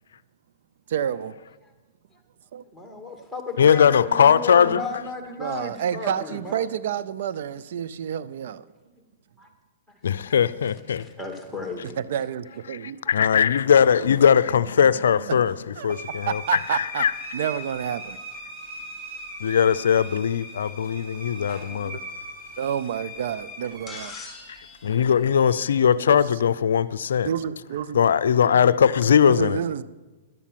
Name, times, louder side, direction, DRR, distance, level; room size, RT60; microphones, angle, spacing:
voice 1, 0.9-1.3 2.5-2.6 5.4-8.6 12.0-13.0 15.8-17.0 17.3-18.2 21.7-22.0 22.6-24.1 26.1-26.2 27.2-28.0 29.2-29.8, right 9 dB, 65° right, 0.4 m, -29 dB
voice 2, 2.7-6.7 9.4-9.5 10.1-10.3 10.9-12.0 13.0-13.1 14.5-14.6 14.9-15.1 15.4-15.8, left 3 dB, 5° right, 2.5 m, -35 dB
voice 3, 3.6-4.8 10.0-11.1 12.7-15.6 15.8-17.1 19.4-22.0 24.5-24.6 24.8-27.3 27.9-29.6, left 8 dB, 80° left, 0.4 m, -20 dB
sound 1, 15.9-25.5, equal, 35° right, 3.5 m, -40 dB
sound 2, 23.9-26.2 27.7-27.8 29.0-29.1, left 4 dB, 15° left, 3.8 m, -43 dB
12.0 x 8.3 x 7.5 m
hypercardioid pair, 130°, 0 cm